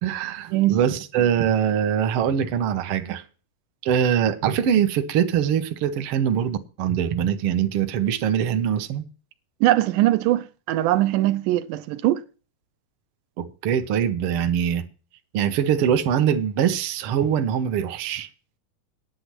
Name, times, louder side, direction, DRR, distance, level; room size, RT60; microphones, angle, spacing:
voice 1, 0.0-3.2 3.8-9.0 13.4-14.8 15.3-18.3, right 8 dB, 65° right, 1.4 m, -23 dB
voice 2, 9.6-12.2, right 15 dB, 80° right, 2.2 m, -21 dB
10.0 x 7.9 x 6.0 m
omnidirectional pair, 3.8 m